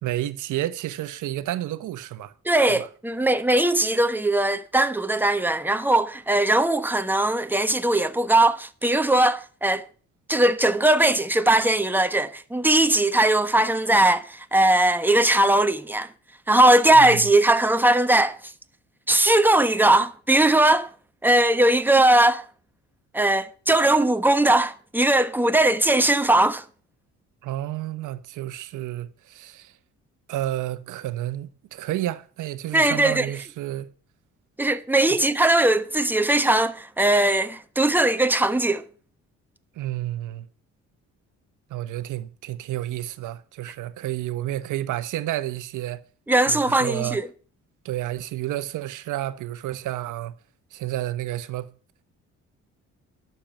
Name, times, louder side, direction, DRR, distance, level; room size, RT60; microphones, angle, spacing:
voice 1, 0.0-2.3 2.7-2.9 16.9-17.3 27.4-29.7 30.3-33.9 35.1-35.2 39.8-40.5 41.7-46.0 46.5-47.2 47.8-50.3 50.7-51.7, right 14 dB, 85° right, 1.1 m, -30 dB
voice 2, 2.4-9.8 10.3-16.1 16.5-18.4 19.1-20.9 21.2-22.4 23.1-26.6 32.7-33.3 34.6-38.8 46.3-47.2, right 1 dB, 5° right, 1.2 m, -19 dB
12.0 x 7.0 x 6.9 m
cardioid pair, 90°, 30 cm